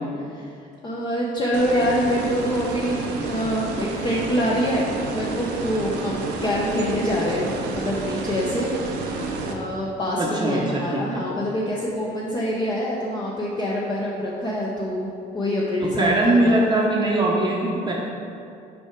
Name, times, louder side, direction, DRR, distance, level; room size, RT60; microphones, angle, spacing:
voice 1, 0.8-3.0 3.3-8.7 9.5-16.6, equal, 25° left, -5 dB, 0.8 m, -25 dB
sound 1, 1.5-9.5, right 3 dB, 85° right, 0.8 m, -30 dB
voice 2, 10.2-11.0 15.8-17.9, right 2 dB, 25° right, -3 dB, 0.8 m, -21 dB
6.1 x 4.7 x 4.6 m, 2.5 s
cardioid pair, 110°, 17 cm